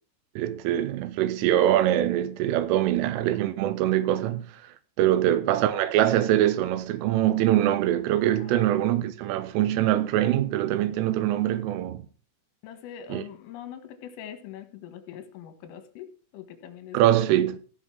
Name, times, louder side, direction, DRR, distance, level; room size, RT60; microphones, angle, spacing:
voice 1, 0.4-4.5 5.0-12.0 13.1-13.2 16.9-17.6, right 12 dB, 80° right, 3.6 m, -23 dB
voice 2, 12.6-16.1 16.3-17.0, left 9 dB, 80° left, 4.1 m, -42 dB
16.0 x 6.1 x 6.1 m
omnidirectional pair, 5.8 m